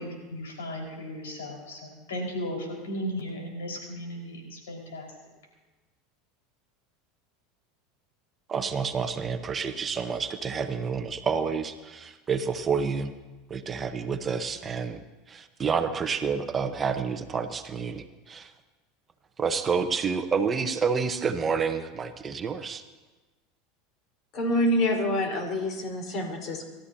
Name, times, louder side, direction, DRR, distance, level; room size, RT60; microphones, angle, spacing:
voice 1, 0.0-5.1, equal, 85° left, -1 dB, 4.9 m, -36 dB
voice 2, 8.5-13.1 13.5-15.0 15.3-18.5 19.4-22.8, right 5 dB, 30° right, 8 dB, 1.1 m, -29 dB
voice 3, 24.3-26.7, left 1 dB, 50° left, 1 dB, 4.3 m, -26 dB
30.0 x 13.0 x 2.9 m, 1.2 s
hypercardioid pair, 90°, 0 cm